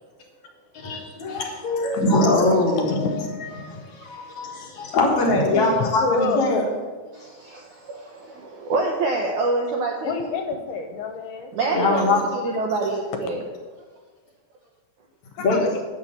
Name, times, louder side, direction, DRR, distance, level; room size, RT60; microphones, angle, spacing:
voice 1, 0.8-3.2 3.5-6.6 11.7-12.2 15.4-15.6, left 2 dB, 55° left, -2 dB, 2.3 m, -22 dB
voice 2, 6.0-6.6 10.0-11.5 15.3-15.7, left 3 dB, 75° left, 4 dB, 2.8 m, -28 dB
voice 3, 7.1-10.3 11.5-13.5, right 3 dB, 75° right, 0 dB, 1.8 m, -26 dB
9.6 x 6.3 x 7.1 m, 1.4 s
omnidirectional pair, 4.7 m